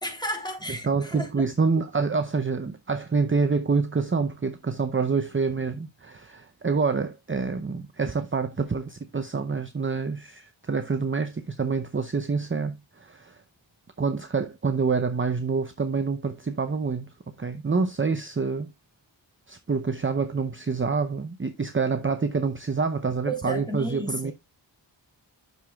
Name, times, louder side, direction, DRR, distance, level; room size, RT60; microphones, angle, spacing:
voice 1, 0.0-1.4 23.2-24.3, right 1 dB, 10° left, 3.2 m, -32 dB
voice 2, 0.8-13.4 14.0-17.1 17.4-18.7 19.5-24.3, right 4 dB, 25° right, 0.7 m, -27 dB
9.2 x 6.7 x 2.3 m
wide cardioid pair, 60°, 46 cm